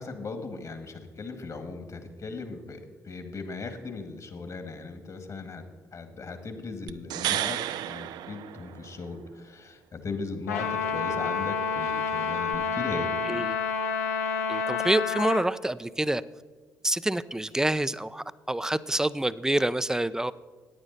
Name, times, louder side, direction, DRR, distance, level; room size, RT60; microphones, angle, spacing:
voice 1, 0.0-5.6 5.9-7.6 7.8-13.1, left 4 dB, 45° left, 8 dB, 1.9 m, -38 dB
sound 1, 6.9-9.2 12.5-12.6, right 12 dB, 65° right, 0.5 m, -32 dB
Trumpet, 10.5-15.5, left 5 dB, 85° left, 0.6 m, -29 dB
voice 2, 13.3-13.6 14.5-16.2 16.8-20.3, right 1 dB, 5° right, 16 dB, 0.5 m, -27 dB
14.5 x 9.8 x 4.0 m, 1.4 s
hypercardioid pair, 45°, 8 cm